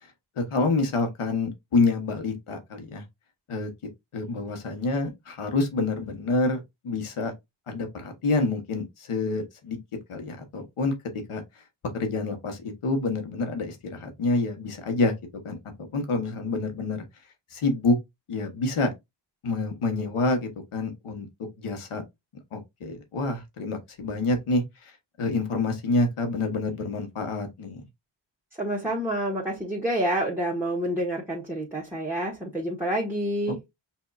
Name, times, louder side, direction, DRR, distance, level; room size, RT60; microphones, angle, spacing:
voice 1, 0.4-3.0 3.5-3.7 4.1-7.3 7.7-9.8 10.1-10.9 11.3-11.4 11.9-15.1 15.4-15.6 15.9-17.0 17.5-18.0 18.3-18.9 19.4-21.3 21.6-22.0 22.5-24.9 25.2-27.8 33.5-33.7, left 3 dB, 90° left, 1.3 m, -27 dB
voice 2, 28.6-33.6, right 1 dB, 5° right, 1.5 m, -28 dB
5.7 x 2.8 x 2.4 m
cardioid pair, 70°, 49 cm